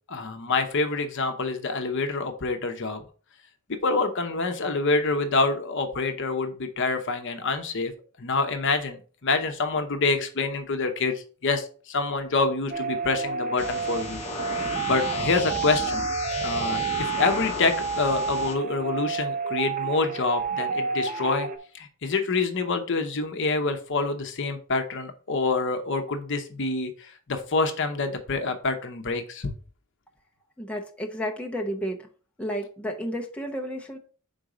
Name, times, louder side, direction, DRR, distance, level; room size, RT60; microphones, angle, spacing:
voice 1, 0.1-3.0 3.7-7.9 8.2-16.0 16.4-21.5 21.7-29.5, left 3 dB, 55° left, 6 dB, 0.8 m, -27 dB
sound 1, 12.7-21.6, right 5 dB, 40° right, 0.7 m, -30 dB
sound 2, 13.6-18.5, left 3 dB, 30° left, 1.0 m, -34 dB
voice 2, 30.6-32.1 32.4-34.0, equal, 5° left, -1 dB, 0.8 m, -32 dB
5.3 x 4.0 x 4.8 m, 0.40 s
head